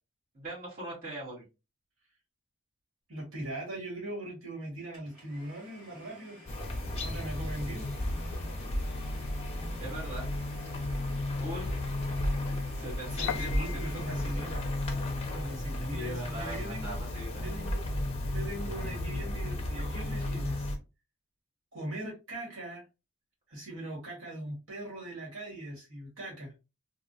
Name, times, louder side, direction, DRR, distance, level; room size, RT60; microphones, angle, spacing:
voice 1, 0.3-1.4 9.8-10.2 11.4-11.7 12.8-14.0 15.9-17.4, right 1 dB, 40° right, -6 dB, 1.8 m, -40 dB
voice 2, 3.1-6.4 7.0-7.9 13.1-14.6 15.3-17.0 17.4-17.9 18.3-20.7 21.7-22.8 23.5-26.5, right 1 dB, 60° right, -3 dB, 1.6 m, -40 dB
Domestic sounds home sounds, 4.9-14.9, left 1 dB, 5° right, 1.8 m, -54 dB
sound 1, 6.5-20.8, left 1 dB, 25° left, 0.6 m, -34 dB
Piano, 13.3-19.1, left 8 dB, 70° left, 0.3 m, -45 dB
3.3 x 2.4 x 2.7 m, 0.28 s
head